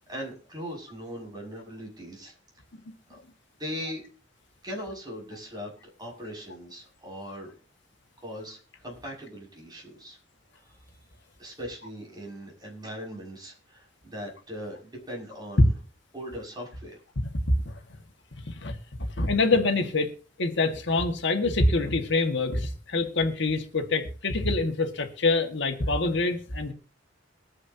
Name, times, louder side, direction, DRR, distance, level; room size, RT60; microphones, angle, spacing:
voice 1, 0.1-2.3 3.1-3.2 3.6-4.0 4.6-5.7 6.0-7.5 8.2-10.2 10.6-10.8 11.4-15.7 16.1-17.0, equal, 20° right, -1 dB, 6.4 m, -39 dB
voice 2, 18.4-18.8 19.2-20.1 20.4-26.7, left 3 dB, 65° left, 5 dB, 1.8 m, -25 dB
22.0 x 9.8 x 2.8 m, 0.36 s
head